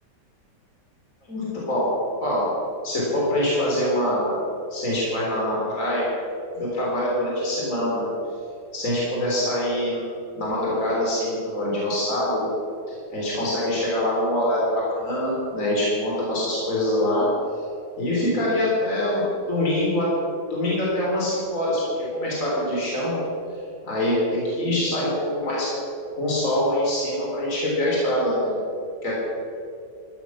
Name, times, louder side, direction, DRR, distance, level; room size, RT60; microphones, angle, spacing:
voice 1, 1.2-1.9 2.2-2.4 2.8-4.4 4.7-6.1 6.6-8.1 8.7-10.1 10.3-12.5 13.1-17.3 18.0-20.1 20.5-23.2 23.8-25.7 26.1-28.6 29.0-29.1, left 1 dB, 50° left, -6 dB, 4.1 m, -24 dB
15.0 x 12.5 x 6.0 m, 2.5 s
omnidirectional pair, 1.9 m